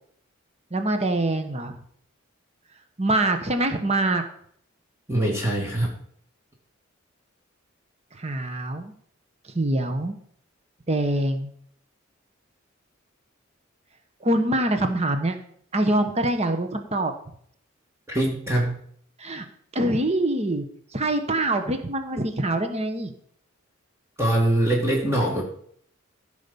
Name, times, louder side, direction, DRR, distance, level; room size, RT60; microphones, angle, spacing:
voice 1, 0.7-1.7 3.0-4.2 8.2-8.9 9.5-10.1 10.9-11.5 14.2-15.4 15.7-17.1 19.2-19.4 19.7-20.6 20.9-23.1, right 1 dB, 30° right, 7 dB, 1.1 m, -24 dB
voice 2, 5.1-5.9 18.1-18.8 24.2-25.4, right 1 dB, 15° right, -2 dB, 2.0 m, -23 dB
15.0 x 5.1 x 6.9 m, 0.63 s
head